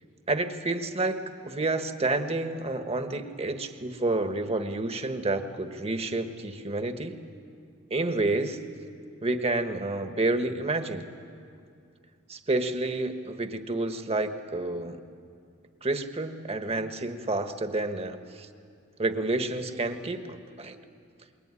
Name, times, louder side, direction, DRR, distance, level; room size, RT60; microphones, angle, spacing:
voice 1, 0.3-1.2 1.4-7.1 7.9-8.6 9.2-11.1 12.3-15.0 15.8-18.5 19.0-20.8, right 2 dB, 30° right, 7 dB, 1.4 m, -29 dB
26.0 x 21.5 x 9.8 m, 2.4 s
head